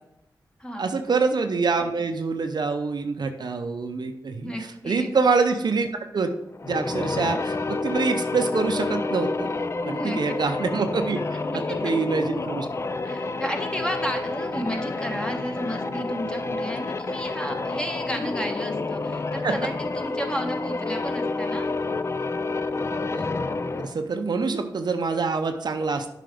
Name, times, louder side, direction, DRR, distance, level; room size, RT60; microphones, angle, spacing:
voice 1, 0.8-6.3 6.6-9.5 9.8-12.7 19.4-19.5 23.1-23.3 23.8-26.1, right 4 dB, 65° right, 7 dB, 0.6 m, -25 dB
voice 2, 4.4-5.1 9.9-10.4 11.4-11.9 13.0-21.8, equal, 10° left, 3 dB, 1.2 m, -33 dB
sound 1, 6.5-24.0, left 3 dB, 35° left, 0.4 m, -29 dB
7.5 x 4.9 x 3.4 m, 0.83 s
cardioid pair, 40°, 8 cm